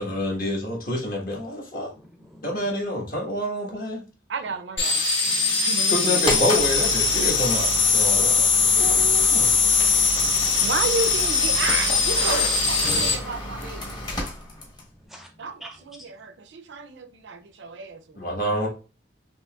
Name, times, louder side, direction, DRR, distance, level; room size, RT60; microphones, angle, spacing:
voice 1, 0.0-1.9 2.4-4.0 5.9-9.5 18.1-18.7, left 1 dB, 50° left, 1.3 m, -27 dB
voice 2, 1.9-2.7 5.2-5.7 8.8-9.1 9.9-10.7 14.1-14.5 15.1-15.3 15.6-16.1, equal, ahead, 0.5 m, -47 dB
voice 3, 4.3-5.0 5.7-6.2 9.6-9.7 10.6-14.0 15.4-18.3, right 4 dB, 75° right, 0.5 m, -32 dB
sound 1, 4.8-13.1, left 4 dB, 85° left, 1.6 m, -21 dB
sound 2, 6.2-14.9, left 1 dB, 25° left, 1.0 m, -33 dB
Breathing, 8.7-13.7, left 2 dB, 65° left, 0.8 m, -37 dB
5.6 x 2.8 x 2.3 m
head